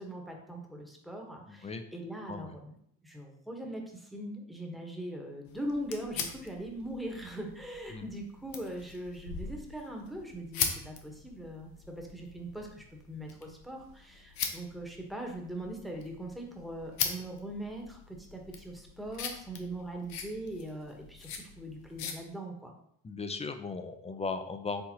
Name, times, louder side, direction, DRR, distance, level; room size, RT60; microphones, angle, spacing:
voice 1, 0.0-2.7 3.0-22.7, right 1 dB, ahead, 1 dB, 1.1 m, -41 dB
voice 2, 1.5-1.8 2.3-2.6 7.9-8.1 23.0-24.8, left 4 dB, 15° left, 7 dB, 0.5 m, -37 dB
sound 1, 5.5-22.2, left 7 dB, 65° left, 0.8 m, -41 dB
4.4 x 3.6 x 2.8 m, 0.69 s
hypercardioid pair, 65°, 38 cm